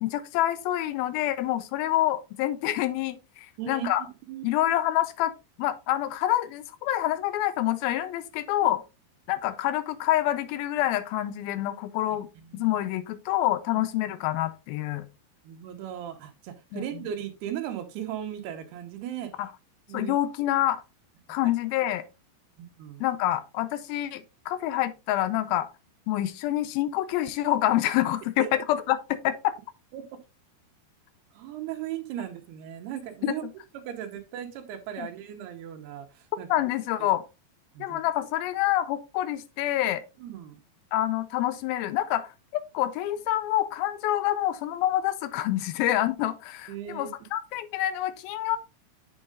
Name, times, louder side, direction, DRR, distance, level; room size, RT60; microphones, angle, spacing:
voice 1, 0.0-4.0 4.4-5.3 5.6-8.8 9.3-12.3 12.5-15.1 16.7-16.8 19.4-19.5 19.9-20.8 21.3-22.0 23.0-25.7 26.1-29.5 33.2-33.4 35.0-35.1 36.5-37.2 37.8-40.0 40.9-48.6, left 13 dB, 80° left, 2.3 m, -27 dB
voice 2, 12.4-12.7 15.4-19.3 19.9-20.1 21.4-21.5 22.6-23.0 28.4-28.5 29.9-30.0 31.3-33.4 33.7-36.5 37.7-38.0 40.2-40.6 46.7-47.1, right 10 dB, 80° right, 3.0 m, -37 dB
7.8 x 7.4 x 2.4 m
omnidirectional pair, 4.7 m